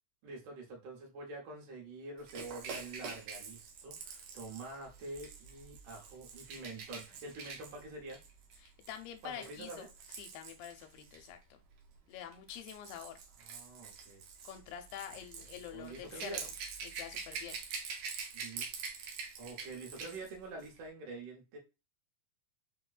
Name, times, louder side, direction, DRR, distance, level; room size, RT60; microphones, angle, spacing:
voice 1, 0.2-8.2 9.2-9.9 13.4-14.2 15.7-16.4 18.3-18.7 19.4-21.6, right 2 dB, 70° right, 0 dB, 2.3 m, -46 dB
Rattle / Rattle (instrument), 2.3-11.3 12.2-20.3 20.6-20.8, right 5 dB, 85° right, 1.5 m, -46 dB
voice 2, 8.6-9.7 10.1-11.4 12.1-13.2 14.4-16.5 16.8-17.6, left 10 dB, 90° left, 5 dB, 2.3 m, -46 dB
5.4 x 2.1 x 2.3 m, 0.28 s
omnidirectional pair, 4.0 m